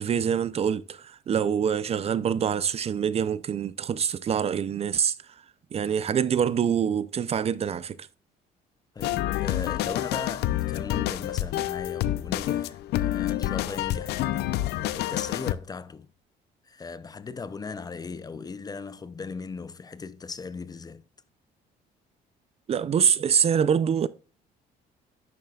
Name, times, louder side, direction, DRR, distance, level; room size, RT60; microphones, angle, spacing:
voice 1, 0.0-5.1 5.7-8.0 22.7-24.1, right 8 dB, 35° right, 0.4 m, -25 dB
voice 2, 8.9-14.6 14.9-16.1 16.6-21.0, left 4 dB, 20° left, 0.5 m, -38 dB
sound 1, 9.0-15.5, left 14 dB, 80° left, 0.5 m, -28 dB
10.5 x 7.3 x 2.3 m
cardioid pair, 110°, 17 cm